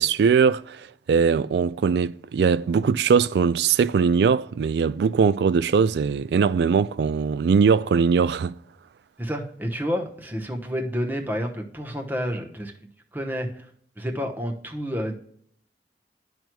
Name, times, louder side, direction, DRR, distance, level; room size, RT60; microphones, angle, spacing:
voice 1, 0.0-8.5, right 6 dB, 65° right, 0.3 m, -21 dB
voice 2, 9.2-12.7 13.1-13.7 14.0-15.1, equal, 10° right, 0.9 m, -29 dB
12.0 x 4.5 x 2.2 m
head